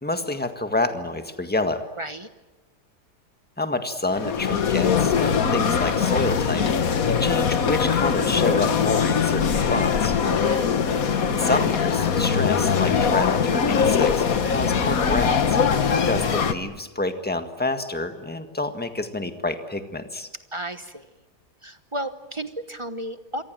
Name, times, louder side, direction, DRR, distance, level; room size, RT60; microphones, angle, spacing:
voice 1, 0.0-1.9 3.6-10.2 11.3-15.6 16.0-20.3, left 2 dB, 5° left, 7 dB, 1.6 m, -28 dB
voice 2, 2.0-2.3 10.3-10.7 20.5-21.1 21.6-23.4, right 1 dB, 20° right, 10 dB, 0.9 m, -33 dB
sound 1, 4.1-16.5, left 6 dB, 60° left, 1.7 m, -22 dB
27.0 x 24.0 x 9.1 m, 1.1 s
omnidirectional pair, 1.8 m